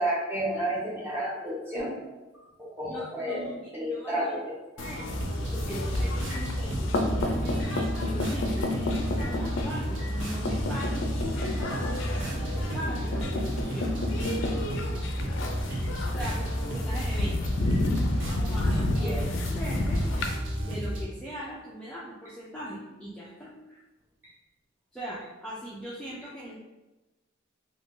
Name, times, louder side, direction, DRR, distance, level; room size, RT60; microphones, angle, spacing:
voice 1, 0.0-2.2 2.6-5.0 6.3-6.4 7.8-7.9 9.2-9.3 12.0-12.3 15.7-16.3 18.4-18.7 19.0-19.2, right 1 dB, 10° right, -6 dB, 0.8 m, -33 dB
voice 2, 2.9-3.5 3.9-4.3 4.8-5.1 5.5-8.9 9.3-11.7 12.3-13.9 16.1-17.4 18.5-20.0 20.6-23.8 24.9-26.5, equal, 5° left, -8 dB, 0.4 m, -39 dB
sound 1, 4.8-20.3, left 2 dB, 75° left, 0.4 m, -31 dB
sound 2, 5.1-21.0, equal, 70° right, 0.6 m, -32 dB
2.5 x 2.4 x 3.5 m, 1.1 s
head